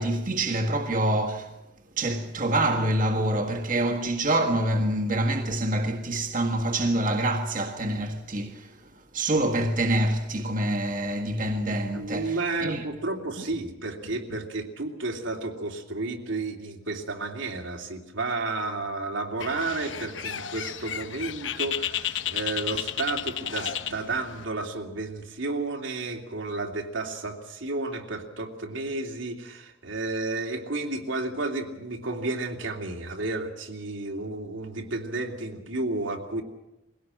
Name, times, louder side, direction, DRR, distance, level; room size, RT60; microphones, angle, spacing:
voice 1, 0.0-1.5 1.9-8.8 9.1-12.8, right 1 dB, 45° right, 1.7 m, -26 dB
voice 2, 11.9-36.4, right 2 dB, 85° right, 2.8 m, -32 dB
Bird, 19.4-24.5, left 9 dB, 75° left, 1.0 m, -33 dB
22.0 x 17.0 x 7.7 m
head